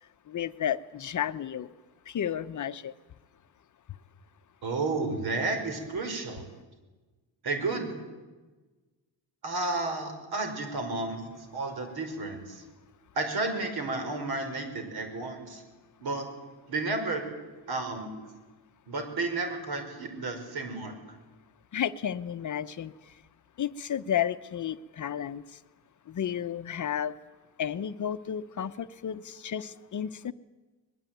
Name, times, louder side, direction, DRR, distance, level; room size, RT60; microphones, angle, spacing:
voice 1, 0.3-1.7 2.1-2.9 21.7-22.9 23.6-25.4 26.1-27.1 27.6-30.3, left 9 dB, 50° left, 11 dB, 0.8 m, -32 dB
voice 2, 4.6-6.5 7.4-7.9 9.4-12.6 13.1-15.6 16.0-16.3 16.7-17.2 17.7-18.1 18.9-20.9, right 3 dB, 65° right, 6 dB, 5.4 m, -32 dB
22.5 x 21.0 x 9.2 m, 1.2 s
wide cardioid pair, 160°, 40 cm